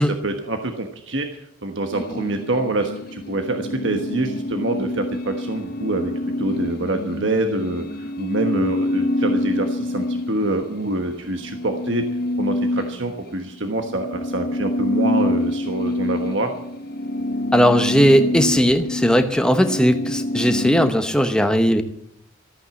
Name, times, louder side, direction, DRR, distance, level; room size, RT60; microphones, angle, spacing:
voice 1, 0.0-6.1 6.4-12.0 12.4-16.5, right 2 dB, 60° right, 5 dB, 1.3 m, -26 dB
sound 1, 1.9-10.8 11.1-20.9, left 1 dB, 45° left, 0.8 m, -26 dB
voice 2, 17.5-21.8, equal, 5° left, 7 dB, 1.0 m, -17 dB
14.0 x 9.0 x 8.2 m, 0.73 s
head